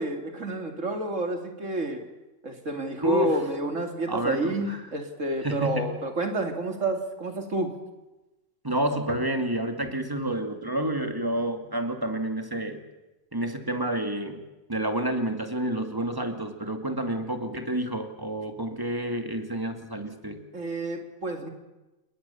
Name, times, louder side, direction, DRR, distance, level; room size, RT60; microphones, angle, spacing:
voice 1, 0.0-2.0 2.4-7.8 20.5-21.5, right 2 dB, 90° right, 5 dB, 3.1 m, -30 dB
voice 2, 3.0-3.4 4.1-4.8 5.4-5.9 8.6-12.8 13.3-14.4 14.7-20.4, right 1 dB, 15° right, 5 dB, 2.5 m, -29 dB
28.0 x 22.0 x 7.1 m, 1.1 s
omnidirectional pair, 1.3 m